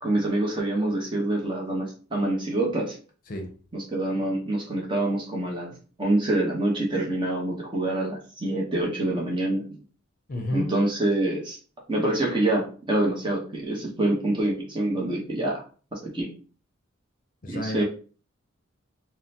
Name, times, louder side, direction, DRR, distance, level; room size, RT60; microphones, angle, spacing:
voice 1, 0.0-3.0 3.7-5.7 6.0-9.8 10.5-11.6 11.9-15.6 16.0-16.3 17.5-17.8, right 1 dB, 25° right, -2 dB, 0.8 m, -26 dB
voice 2, 10.3-10.7 17.4-17.8, left 1 dB, 45° left, 4 dB, 0.6 m, -31 dB
3.7 x 2.1 x 2.7 m, 0.39 s
head